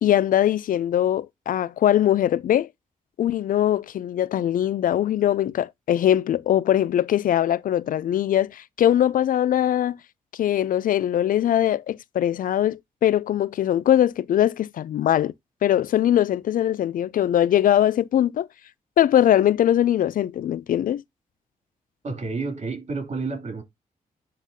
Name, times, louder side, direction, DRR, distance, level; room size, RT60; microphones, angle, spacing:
voice 1, 0.0-2.7 3.2-10.0 10.3-15.3 15.6-18.5 19.0-21.0, left 11 dB, 65° left, 0.4 m, -21 dB
voice 2, 22.0-23.6, right 3 dB, 50° right, 2.9 m, -30 dB
10.5 x 3.9 x 2.7 m
cardioid pair, 75°, 15 cm